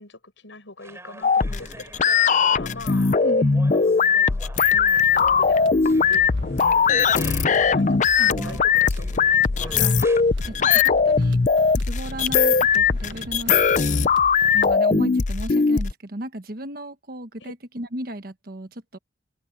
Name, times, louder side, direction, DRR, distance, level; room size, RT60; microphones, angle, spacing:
voice 1, 0.0-3.1 3.7-4.4 4.7-9.7 17.4-17.5, left 2 dB, 90° left, 6.2 m, -43 dB
sound 1, 0.8-7.8 8.3-10.2, right 1 dB, 15° right, 3.5 m, -43 dB
sound 2, 1.2-15.9, left 5 dB, 40° left, 0.5 m, -20 dB
voice 2, 3.2-3.8 8.2-8.6 9.6-10.0 10.4-11.4 11.7-14.1 14.5-19.0, right 1 dB, 50° right, 1.3 m, -35 dB
sound 3, 4.5-14.8, right 2 dB, 80° right, 1.5 m, -40 dB
open air
head